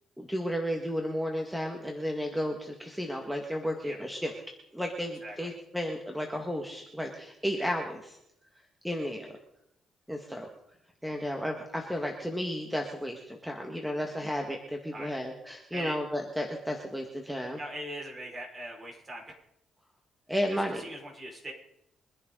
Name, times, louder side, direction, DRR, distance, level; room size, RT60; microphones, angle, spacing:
voice 1, 0.2-4.3 4.7-8.2 8.8-9.4 10.1-10.5 11.0-17.6 20.3-20.8, equal, ahead, 2 dB, 1.8 m, -33 dB
voice 2, 14.9-15.2 15.7-16.0 17.6-19.3 20.8-21.5, right 1 dB, 30° right, 0 dB, 5.1 m, -40 dB
24.0 x 10.5 x 3.9 m, 0.79 s
cardioid pair, 90°, 0 cm